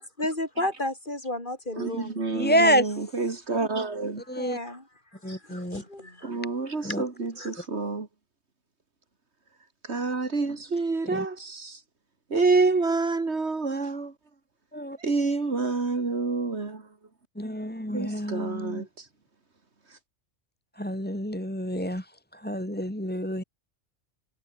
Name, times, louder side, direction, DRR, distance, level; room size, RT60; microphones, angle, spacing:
voice 1, 0.0-2.3 4.4-4.9 5.2-6.3 7.4-7.5, left 1 dB, 40° left, 5.3 m, -33 dB
voice 2, 1.8-4.2 6.2-8.1 9.9-11.7 12.3-14.1 15.0-16.8 17.9-18.8, right 3 dB, 60° right, 2.7 m, -27 dB
voice 3, 2.3-3.0 4.3-4.6 5.2-5.8 6.8-7.0 11.1-11.3 14.7-15.0 17.4-18.8 20.8-22.0 22.3-23.4, equal, 5° left, 2.5 m, -28 dB
omnidirectional pair, 1.3 m